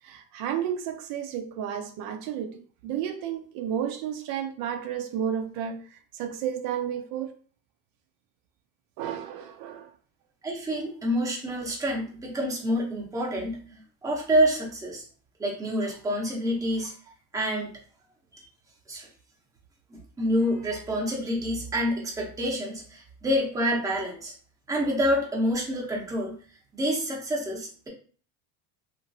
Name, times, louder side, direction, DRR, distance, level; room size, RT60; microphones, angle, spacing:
voice 1, 0.0-7.3 9.0-9.9, right 9 dB, 70° right, 0.5 m, -32 dB
voice 2, 10.4-15.0 15.4-16.9 17.3-17.7 18.9-19.1 19.9-24.3 24.7-26.3 26.7-27.9, equal, 10° right, 0.7 m, -27 dB
2.9 x 2.5 x 2.6 m
cardioid pair, 155°, 36 cm